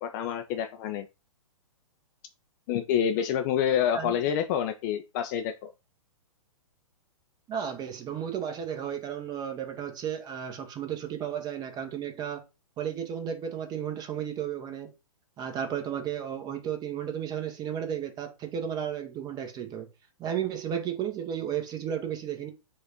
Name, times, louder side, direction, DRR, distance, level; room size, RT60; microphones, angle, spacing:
voice 1, 0.0-1.1 2.7-5.7, left 9 dB, 30° left, 0.4 m, -27 dB
voice 2, 7.5-12.4 12.8-14.9 15.4-19.9 20.2-22.5, right 9 dB, 20° right, 0.9 m, -33 dB
4.8 x 2.5 x 4.3 m
figure-of-eight pair, 115°, 18 cm